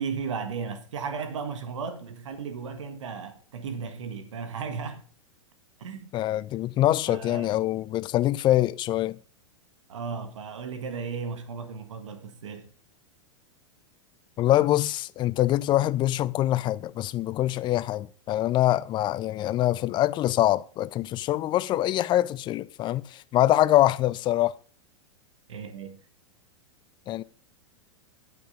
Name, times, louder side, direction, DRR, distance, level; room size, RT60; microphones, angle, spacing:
voice 1, 0.0-5.0 5.8-6.1 7.1-7.5 9.9-12.7 25.5-26.0, right 5 dB, 75° right, 1.6 m, -35 dB
voice 2, 6.1-9.2 14.4-24.6 27.1-27.2, left 14 dB, 30° left, 0.5 m, -24 dB
11.0 x 6.1 x 5.1 m
hypercardioid pair, 105°, 16 cm